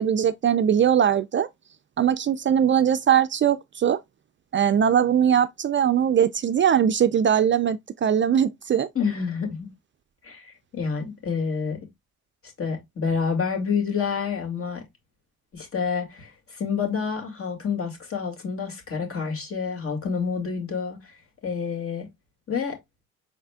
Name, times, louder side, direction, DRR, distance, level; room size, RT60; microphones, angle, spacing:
voice 1, 0.0-1.5 2.0-4.0 4.5-8.9, right 8 dB, 40° right, 0.4 m, -21 dB
voice 2, 8.9-9.7 10.2-11.8 12.6-14.8 15.5-21.1 21.4-22.1 22.5-22.8, left 6 dB, 45° left, 2.2 m, -28 dB
5.0 x 4.1 x 2.2 m
cardioid pair, 90°, 30 cm